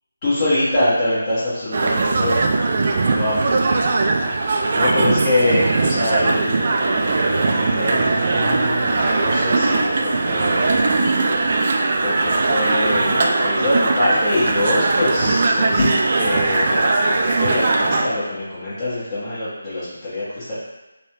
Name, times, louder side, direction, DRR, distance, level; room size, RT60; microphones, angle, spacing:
voice 1, 0.2-2.4 3.1-3.4 4.3-10.9 12.0-20.6, left 1 dB, 30° left, -13 dB, 1.1 m, -24 dB
sound 1, 1.7-18.0, right 3 dB, 45° right, 0.3 m, -19 dB
3.3 x 2.2 x 2.9 m, 1.1 s
figure-of-eight pair, 160°, 0 cm